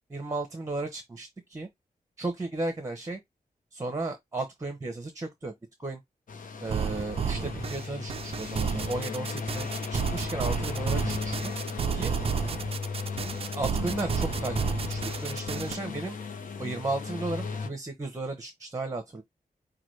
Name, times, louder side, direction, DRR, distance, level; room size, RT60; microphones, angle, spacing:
voice 1, 0.1-1.7 2.2-3.2 3.7-5.5 5.8-6.0 6.6-11.5 11.9-12.1 13.5-16.2 16.6-19.2, right 2 dB, 20° right, 0.9 m, -34 dB
sound 1, 6.3-17.7, left 5 dB, 65° left, 0.8 m, -35 dB
sound 2, 6.7-15.8, right 7 dB, 40° right, 0.3 m, -32 dB
5.8 x 2.3 x 3.2 m
wide cardioid pair, 135°, 15 cm